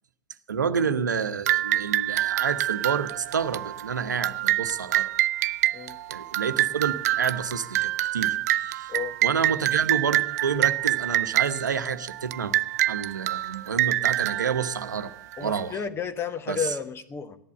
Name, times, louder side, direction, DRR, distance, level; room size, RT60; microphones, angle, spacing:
voice 1, 0.5-5.1 6.1-8.9 9.2-12.5 12.9-15.1 15.4-15.8 16.5-16.7, right 6 dB, 80° right, 10 dB, 0.9 m, -29 dB
sound 1, 1.5-15.6, right 15 dB, 60° right, 0.5 m, -26 dB
voice 2, 15.4-17.4, left 6 dB, 25° left, 11 dB, 1.2 m, -32 dB
15.0 x 11.0 x 6.8 m, 0.74 s
figure-of-eight pair, 90°, 10 cm